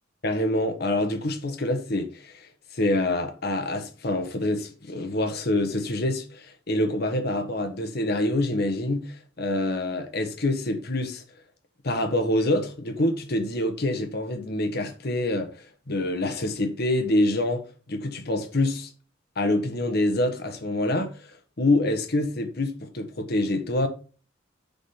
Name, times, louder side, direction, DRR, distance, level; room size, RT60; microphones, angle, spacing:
voice 1, 0.2-2.5 2.7-11.2 11.8-17.6 17.9-18.9 19.4-21.3 21.6-23.9, left 1 dB, 55° left, 1.3 m, -26 dB
7.2 x 3.9 x 5.5 m
head